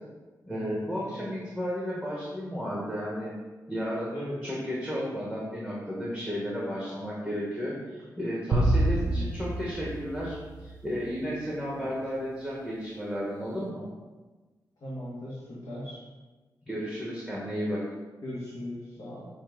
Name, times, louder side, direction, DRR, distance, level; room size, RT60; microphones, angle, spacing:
voice 1, 0.4-3.3 3.7-4.2 4.4-13.8 16.6-17.8, equal, 5° left, -6 dB, 1.2 m, -33 dB
sound 1, 8.5-11.0, right 1 dB, 75° right, 0.7 m, -27 dB
voice 2, 9.1-9.5 11.7-11.9 14.8-16.0 18.2-19.3, left 1 dB, 60° left, -8 dB, 1.6 m, -39 dB
7.0 x 2.7 x 5.0 m, 1.2 s
wide cardioid pair, 150°, 7 cm